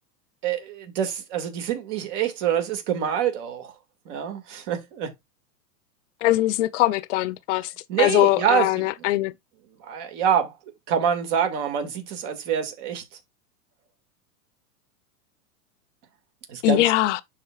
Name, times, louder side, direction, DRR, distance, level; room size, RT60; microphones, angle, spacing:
voice 1, 0.4-3.7 4.1-5.1 7.9-8.8 9.8-10.5 10.9-13.0 16.5-16.8, right 8 dB, 50° right, 2.2 m, -26 dB
voice 2, 6.2-7.7 8.0-9.3 16.6-17.2, left 16 dB, 50° left, 0.6 m, -21 dB
11.5 x 4.0 x 2.4 m
hypercardioid pair, 130°, 46 cm